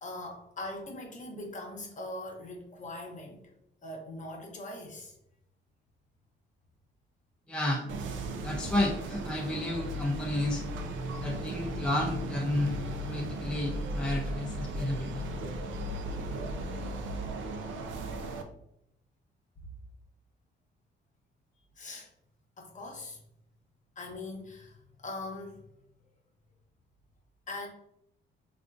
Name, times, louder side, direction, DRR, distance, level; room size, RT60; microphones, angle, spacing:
voice 1, 0.0-3.4 3.8-5.2 21.8-22.1 22.6-23.3 24.0-25.7 27.5-27.7, left 2 dB, 40° left, 1 dB, 0.9 m, -41 dB
voice 2, 7.5-7.9 8.4-10.6 11.2-15.3, left 1 dB, 5° left, -1 dB, 0.5 m, -31 dB
sound 1, 7.9-18.4, right 1 dB, 75° right, 0.5 m, -36 dB
3.4 x 2.4 x 2.5 m, 0.78 s
cardioid pair, 90°, 20 cm